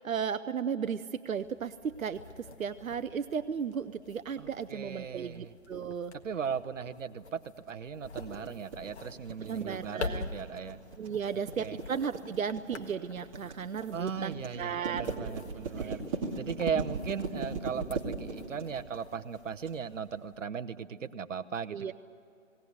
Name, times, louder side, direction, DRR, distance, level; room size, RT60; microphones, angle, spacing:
voice 1, 0.0-6.1 9.4-10.3 11.0-15.2 15.8-16.0 21.7-21.9, right 7 dB, 90° right, 12 dB, 0.8 m, -35 dB
sound 1, 1.3-20.4, left 4 dB, 55° left, 1.7 m, -47 dB
voice 2, 4.4-5.5 6.1-10.8 11.3-11.8 13.9-16.0 16.4-21.9, right 7 dB, 70° right, 9 dB, 1.1 m, -37 dB
sound 2, 8.1-19.7, right 4 dB, 25° right, 2.4 m, -38 dB
18.5 x 18.5 x 9.6 m, 2.6 s
hypercardioid pair, 160°, 40 cm